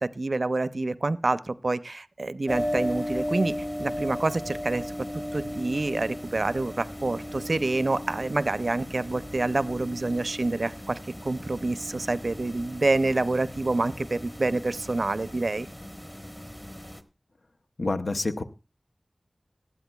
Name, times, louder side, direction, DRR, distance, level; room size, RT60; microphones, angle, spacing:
voice 1, 0.0-4.8 5.3-15.7, right 2 dB, 70° right, 14 dB, 0.5 m, -27 dB
sound 1, 2.5-17.0, equal, 15° left, 1.1 m, -36 dB
voice 2, 17.8-18.4, left 2 dB, 85° left, 8 dB, 0.7 m, -27 dB
18.5 x 12.5 x 2.3 m, 0.32 s
wide cardioid pair, 50°, 0 cm